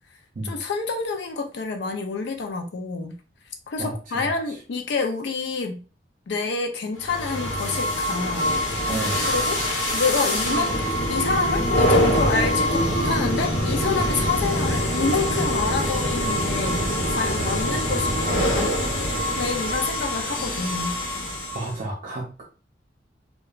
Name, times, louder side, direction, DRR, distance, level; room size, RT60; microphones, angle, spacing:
voice 1, 0.4-3.1 3.7-5.8 6.3-8.5 9.3-9.6 9.9-10.7 11.1-18.8 19.4-21.0, left 4 dB, 60° left, 4 dB, 0.4 m, -28 dB
voice 2, 3.8-4.3 8.9-9.2 21.5-22.4, right 2 dB, 45° right, -2 dB, 0.5 m, -31 dB
sound 1, 7.0-21.8, equal, 85° left, 0.9 m, -24 dB
2.8 x 2.2 x 2.3 m, 0.35 s
head